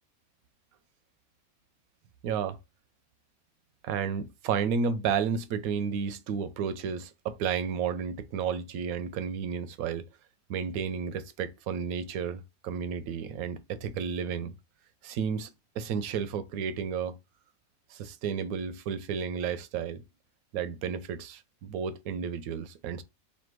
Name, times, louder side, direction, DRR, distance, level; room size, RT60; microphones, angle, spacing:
voice 1, 2.2-2.6 3.8-10.1 10.5-14.5 15.0-15.5 15.8-17.2 17.9-20.0 20.5-23.0, right 7 dB, 85° right, 1.0 m, -32 dB
3.3 x 2.5 x 4.5 m
omnidirectional pair, 1.5 m